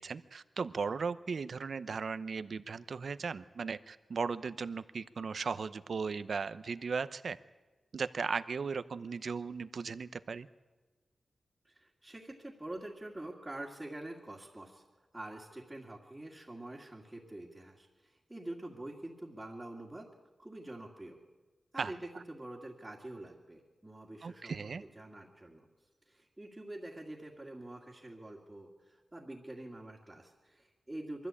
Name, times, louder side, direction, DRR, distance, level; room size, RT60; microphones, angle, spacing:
voice 1, 0.0-7.4 7.9-10.5 21.8-21.9 24.2-24.8, right 5 dB, 65° right, 13 dB, 0.7 m, -37 dB
voice 2, 11.6-14.8 15.1-20.1 20.4-21.2 21.7-25.7 26.1-31.3, right 1 dB, 15° right, -4 dB, 2.3 m, -46 dB
23.5 x 13.5 x 8.4 m, 1.3 s
wide cardioid pair, 95°, 0 cm